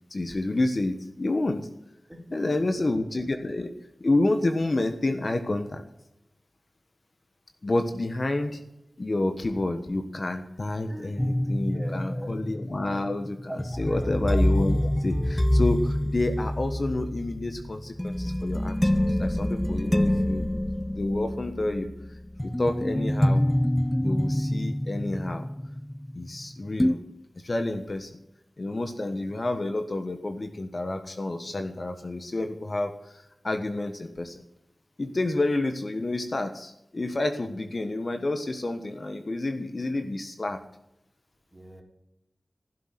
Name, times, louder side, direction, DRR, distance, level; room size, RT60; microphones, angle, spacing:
voice 1, 0.1-1.7 2.3-3.7 4.0-5.8 7.6-8.6 9.0-20.4 20.9-21.9 22.4-23.4 24.0-25.5 26.1-27.0 27.4-28.1 28.6-34.4 35.0-40.6, left 2 dB, 50° left, 7 dB, 1.4 m, -29 dB
voice 2, 2.1-2.9 8.9-9.0 10.9-11.1 11.4-12.3 13.5-14.1 41.5-41.8, right 1 dB, 10° right, 1 dB, 3.9 m, -42 dB
sound 1, 11.2-26.4 26.8-26.9, left 1 dB, 10° left, 0.8 m, -26 dB
15.5 x 7.6 x 9.0 m, 0.88 s
wide cardioid pair, 55°, 0 cm